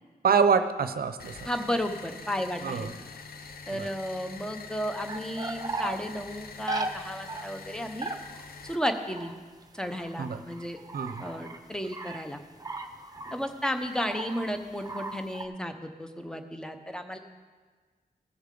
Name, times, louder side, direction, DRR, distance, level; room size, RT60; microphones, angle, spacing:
voice 1, 0.2-1.4 2.6-2.9 3.7-3.9 10.2-10.4 10.9-11.2, right 6 dB, 75° right, 10 dB, 0.7 m, -25 dB
sound 1, 1.2-8.8, left 5 dB, 75° left, 0.7 m, -45 dB
voice 2, 1.4-2.9 3.7-8.1 8.6-9.3 9.7-10.8 11.2-12.4 13.3-17.2, equal, 5° left, 6 dB, 0.8 m, -33 dB
sound 2, 4.9-6.0 6.7-6.9 7.3-7.4 8.0-11.6 11.8-12.2 12.6-13.6 14.0-14.5 14.8-15.5, right 2 dB, 25° right, 0.8 m, -37 dB
16.5 x 7.0 x 3.8 m, 1.5 s
wide cardioid pair, 95°, 16 cm